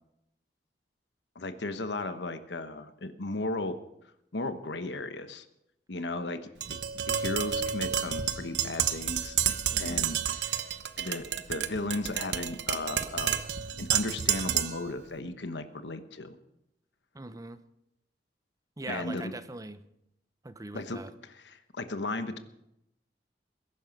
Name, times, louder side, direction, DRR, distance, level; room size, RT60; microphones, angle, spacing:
voice 1, 1.3-3.8 4.3-5.4 5.9-6.4 6.7-10.7 11.0-13.4 13.8-16.4 18.9-19.3 20.7-21.0 21.3-22.4, left 2 dB, 80° left, 9 dB, 1.2 m, -35 dB
Tap, 6.6-14.9, right 9 dB, 75° right, 0.9 m, -30 dB
voice 2, 9.7-10.1 17.1-17.6 18.8-19.8 20.4-21.1, right 2 dB, 20° right, 12 dB, 0.7 m, -41 dB
21.5 x 11.0 x 5.3 m, 0.82 s
head